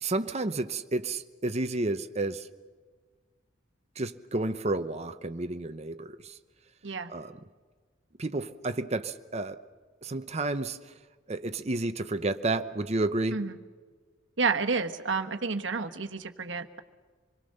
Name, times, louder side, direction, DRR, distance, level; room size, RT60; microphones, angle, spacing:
voice 1, 0.0-2.5 4.0-6.4 7.1-7.3 8.2-9.6 10.0-10.9 11.3-13.4, right 2 dB, 35° right, 9 dB, 0.9 m, -31 dB
voice 2, 14.4-16.8, right 4 dB, 70° right, 7 dB, 1.3 m, -30 dB
26.5 x 22.0 x 6.7 m, 1.5 s
head